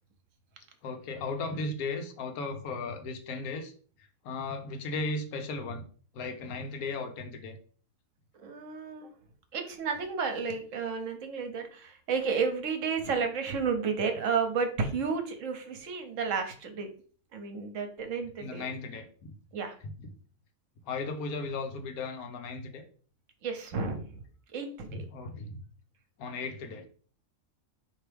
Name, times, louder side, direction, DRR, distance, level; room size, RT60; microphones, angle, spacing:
voice 1, 0.8-3.7 4.2-5.8 6.1-7.6 18.4-19.3 19.8-20.1 20.8-22.8 24.9-25.6 26.2-26.9, left 3 dB, 90° left, 6 dB, 1.2 m, -36 dB
voice 2, 8.3-9.1 9.5-16.9 17.3-18.6 19.5-19.8 23.4-24.0 24.5-24.9, right 5 dB, 65° right, 6 dB, 1.1 m, -32 dB
4.5 x 2.9 x 3.4 m, 0.43 s
omnidirectional pair, 1.5 m